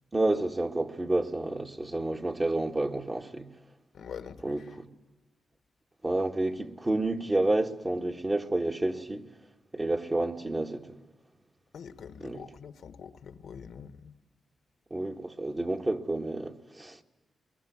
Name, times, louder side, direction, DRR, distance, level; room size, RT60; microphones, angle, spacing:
voice 1, 0.1-3.5 4.4-4.9 6.0-9.3 9.7-11.0 12.2-12.4 14.9-17.0, right 2 dB, 30° right, 2.0 m, -30 dB
voice 2, 3.9-4.8 11.7-14.1, left 7 dB, 80° left, 1.2 m, -45 dB
23.5 x 22.5 x 9.6 m
cardioid pair, 60°, 0 cm